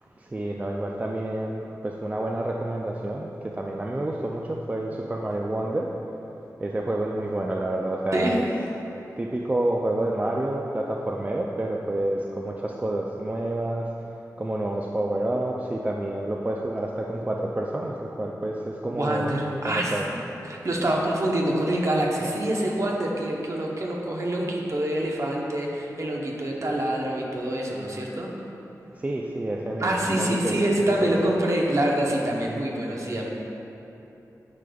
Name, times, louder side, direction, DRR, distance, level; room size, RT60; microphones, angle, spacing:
voice 1, 0.2-5.9 6.6-8.4 9.2-13.9 14.4-19.3 19.6-20.0 29.0-30.7 31.0-31.1, right 1 dB, 20° right, -1 dB, 0.3 m, -28 dB
voice 2, 8.1-8.5 18.9-20.2 20.4-28.3 29.8-33.3, right 1 dB, 50° right, -2 dB, 0.8 m, -26 dB
9.7 x 5.0 x 2.3 m, 3.0 s
wide cardioid pair, 90°, 7 cm